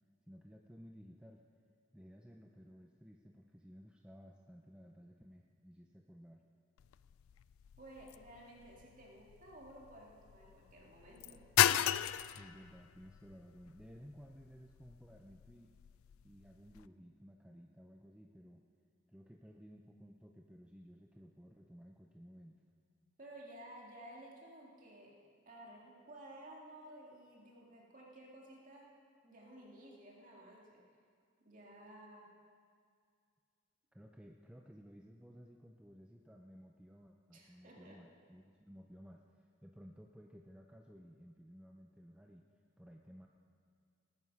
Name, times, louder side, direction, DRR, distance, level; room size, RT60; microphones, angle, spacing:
voice 1, 0.3-1.4 1.9-6.4 12.3-15.7 16.2-18.6 19.1-22.6 33.9-42.5 42.8-43.3, equal, 5° right, 1 dB, 0.5 m, -56 dB
sound 1, 6.8-16.9, left 11 dB, 85° left, 0.3 m, -37 dB
voice 2, 7.8-11.4 23.2-25.2 25.4-28.9 29.2-30.8 31.4-32.3 37.3-38.0, right 1 dB, 40° right, -2 dB, 2.3 m, -54 dB
19.0 x 9.7 x 5.4 m, 2.2 s
head